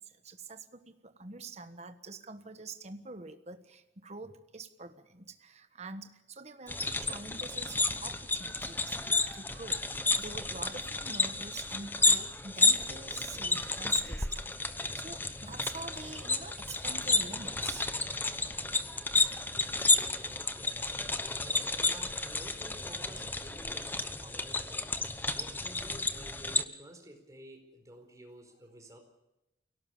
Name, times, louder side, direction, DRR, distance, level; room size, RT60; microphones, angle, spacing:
voice 1, 0.0-9.8 10.2-14.4 14.9-17.9 25.3-25.4, right 3 dB, 40° right, 9 dB, 1.3 m, -46 dB
sound 1, 6.7-26.6, left 3 dB, 10° left, 1.0 m, -31 dB
voice 2, 20.2-24.8 25.3-29.0, right 1 dB, 20° right, 3 dB, 4.6 m, -52 dB
23.5 x 17.5 x 7.2 m, 0.89 s
head